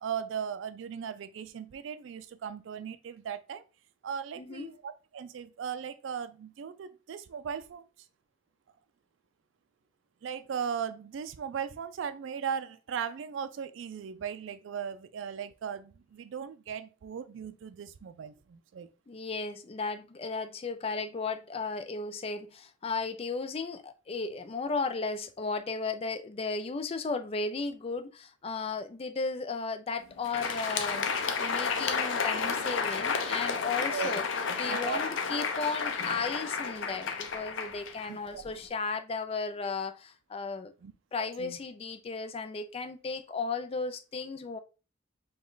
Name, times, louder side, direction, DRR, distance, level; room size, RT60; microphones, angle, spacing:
voice 1, 0.0-3.6 4.0-7.8 10.2-18.9 33.8-34.2 34.6-35.0 35.3-35.5 38.3-38.4 40.8-40.9 41.4-41.6, right 7 dB, 80° right, 0.4 m, -37 dB
voice 2, 4.4-4.8 19.1-31.1 31.4-34.2 34.6-40.7 41.1-44.6, left 4 dB, 30° left, 0.4 m, -35 dB
Crowd, 30.1-38.6, left 5 dB, 85° left, 0.6 m, -32 dB
5.1 x 2.2 x 3.8 m
head